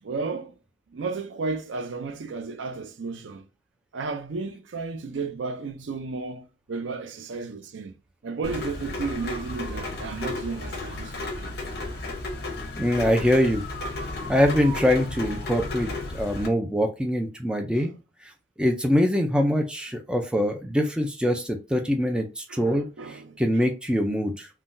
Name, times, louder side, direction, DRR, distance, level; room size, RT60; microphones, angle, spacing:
voice 1, 0.0-0.5 0.9-3.4 3.9-6.4 6.7-7.9 8.2-11.5 17.7-17.9 22.5-23.4, right 4 dB, 80° right, 0.5 m, -33 dB
Rain, 8.4-16.5, left 2 dB, 55° left, 0.8 m, -33 dB
voice 2, 12.8-13.6 14.3-17.9 18.2-18.3 18.6-24.5, equal, 5° right, 0.3 m, -24 dB
3.7 x 2.2 x 2.5 m
head